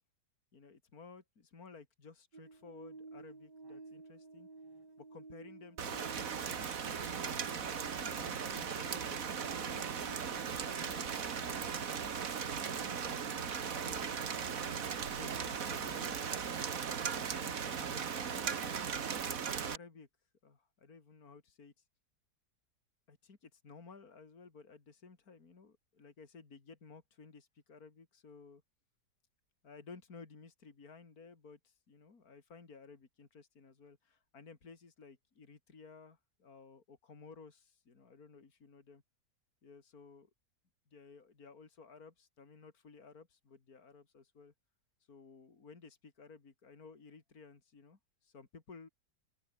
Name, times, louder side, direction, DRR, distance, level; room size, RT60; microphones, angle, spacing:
voice 1, 0.5-4.5 5.0-12.0 12.5-16.2 17.0-19.0 19.4-20.1 20.4-21.7 23.1-28.6 29.6-39.0 39.6-40.3 40.9-44.5 45.1-48.9, left 4 dB, 60° left, 3.3 m, -56 dB
sound 1, 2.3-18.9 19.2-19.3, right 3 dB, 90° right, 5.3 m, -55 dB
Rain, 5.8-19.8, right 7 dB, 55° right, 1.9 m, -38 dB
open air
omnidirectional pair, 1.8 m